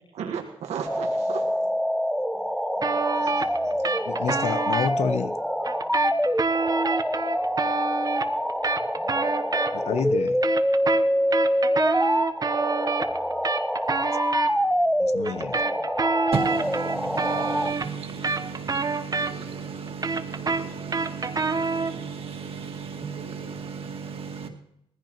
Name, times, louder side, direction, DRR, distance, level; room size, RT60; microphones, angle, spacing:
voice 1, 0.1-1.7 2.3-2.4 2.8-4.0, right 7 dB, 90° right, 1.5 m, -37 dB
sound 1, 0.9-17.7, equal, ahead, 0.7 m, -25 dB
sound 2, 2.8-4.9 5.6-10.0 10.3-14.5 15.2-19.6 19.9-22.0, right 4 dB, 35° right, 1.0 m, -27 dB
voice 2, 4.0-5.4 9.7-10.4 15.0-15.6, left 7 dB, 80° left, 0.8 m, -29 dB
voice 3, 16.3-24.5, right 5 dB, 60° right, 2.1 m, -35 dB
19.5 x 15.0 x 3.0 m
cardioid pair, 70°, 11 cm